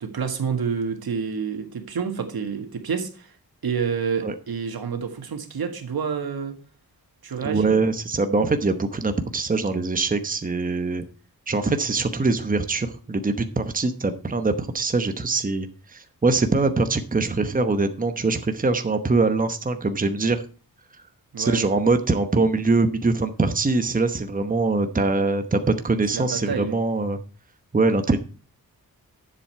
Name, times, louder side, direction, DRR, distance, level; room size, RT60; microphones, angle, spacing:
voice 1, 0.0-3.3 3.6-6.6 7.2-7.8 21.3-21.7 26.1-26.7, right 6 dB, 85° right, 6 dB, 1.8 m, -28 dB
voice 2, 7.4-11.0 11.5-20.4 21.4-27.2 27.7-28.2, right 3 dB, 25° right, 8 dB, 1.0 m, -23 dB
10.5 x 7.6 x 4.6 m, 0.36 s
wide cardioid pair, 130°, 36 cm